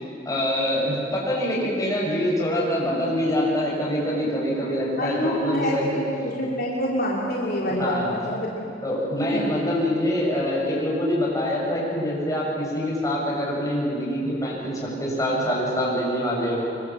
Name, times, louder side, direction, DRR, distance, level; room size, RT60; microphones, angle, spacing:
voice 1, 0.3-6.0 7.7-8.2 8.8-16.6, equal, 20° left, -4 dB, 7.3 m, -25 dB
voice 2, 5.0-8.7 9.3-9.5, equal, 55° left, -4 dB, 3.3 m, -26 dB
25.5 x 24.5 x 7.7 m, 2.7 s
head